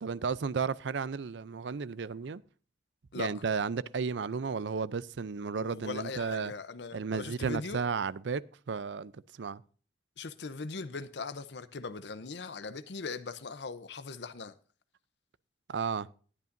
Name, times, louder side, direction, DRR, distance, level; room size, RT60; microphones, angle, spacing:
voice 1, 0.0-2.4 3.1-6.5 6.9-8.4 8.7-9.6 15.7-16.1, right 5 dB, 85° right, 0.5 m, -33 dB
voice 2, 5.6-7.8 10.2-14.5, left 4 dB, 80° left, 0.7 m, -40 dB
19.5 x 8.5 x 2.6 m
head